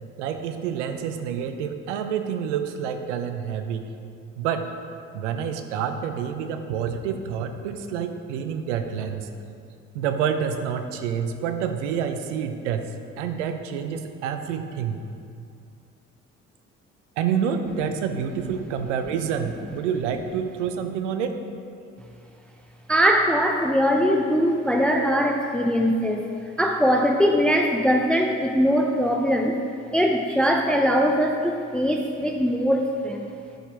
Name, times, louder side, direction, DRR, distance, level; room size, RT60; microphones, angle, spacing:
voice 1, 0.2-3.9 4.4-4.7 5.1-9.3 9.9-12.9 13.2-15.0 17.2-21.4, right 7 dB, 85° right, 7 dB, 0.6 m, -28 dB
voice 2, 22.9-26.2 26.6-29.6 29.9-33.3, equal, 5° left, 3 dB, 0.6 m, -21 dB
10.0 x 5.1 x 4.6 m, 2.4 s
hypercardioid pair, 50°, 35 cm